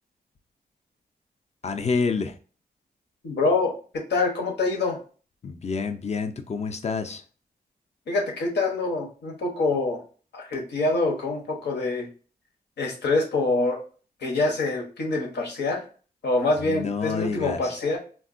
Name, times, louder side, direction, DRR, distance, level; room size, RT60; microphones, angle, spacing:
voice 1, 1.6-2.4 5.4-7.2 16.6-17.7, left 4 dB, 40° left, 8 dB, 0.5 m, -28 dB
voice 2, 3.2-5.0 8.1-10.0 10.3-12.1 12.8-13.8 14.2-15.8 16.2-18.0, left 3 dB, 85° left, 0 dB, 0.9 m, -25 dB
3.5 x 2.3 x 2.5 m, 0.39 s
cardioid pair, 60°, 17 cm